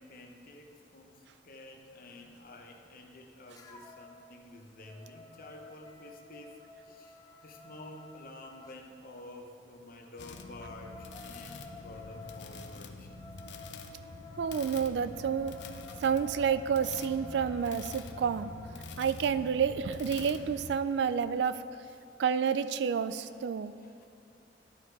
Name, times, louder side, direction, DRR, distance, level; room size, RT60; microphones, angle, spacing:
voice 1, 0.0-13.2 21.9-22.1 23.2-24.1, left 1 dB, 55° left, 3 dB, 0.8 m, -50 dB
sound 1, 3.5-4.2 4.6-8.8 10.2-18.8, left 2 dB, 20° left, 0.7 m, -52 dB
sound 2, 10.2-20.8, left 3 dB, 80° left, 0.5 m, -46 dB
voice 2, 14.4-15.5 16.0-18.5 19.0-21.6 22.2-23.7, right 7 dB, 70° right, 14 dB, 0.3 m, -29 dB
12.0 x 4.6 x 4.7 m, 2.4 s
head